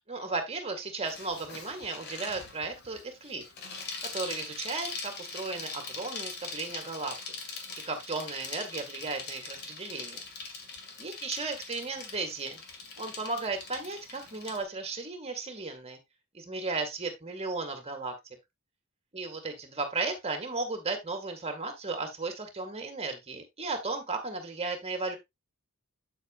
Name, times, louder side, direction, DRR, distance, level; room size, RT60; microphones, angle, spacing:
voice 1, 0.1-3.4 4.1-7.3 7.9-10.2 11.0-12.6 13.0-16.0 16.3-18.1 19.1-25.2, right 3 dB, 30° right, 5 dB, 1.8 m, -35 dB
Bicycle, 1.0-14.6, left 4 dB, 50° left, 2.1 m, -42 dB
8.4 x 8.1 x 2.4 m, 0.19 s
head